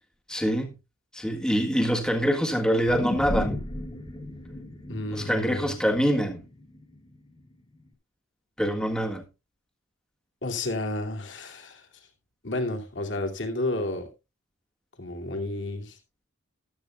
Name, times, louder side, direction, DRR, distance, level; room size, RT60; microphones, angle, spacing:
voice 1, 0.3-0.7 1.1-3.6 5.1-6.4 8.6-9.2, equal, 5° left, 1.7 m, -25 dB
sound 1, 2.9-7.4 7.8-7.9, left 1 dB, 25° left, 2.0 m, -34 dB
voice 2, 4.9-5.8 10.4-11.9 12.4-14.1 15.0-16.0, left 2 dB, 60° left, 2.6 m, -31 dB
14.5 x 12.5 x 2.3 m
head